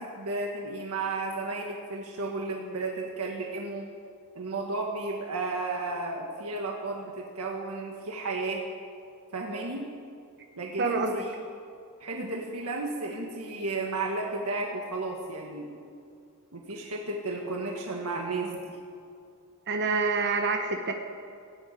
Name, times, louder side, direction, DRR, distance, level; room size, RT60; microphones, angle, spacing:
voice 1, 0.0-3.9 4.3-8.6 9.3-9.9 10.6-11.3 12.0-15.7 16.5-18.8, right 3 dB, 80° right, 0 dB, 1.6 m, -33 dB
voice 2, 10.8-11.2 12.1-12.3 19.7-20.9, right 4 dB, 50° right, 4 dB, 1.0 m, -27 dB
17.0 x 8.0 x 9.2 m, 2.4 s
head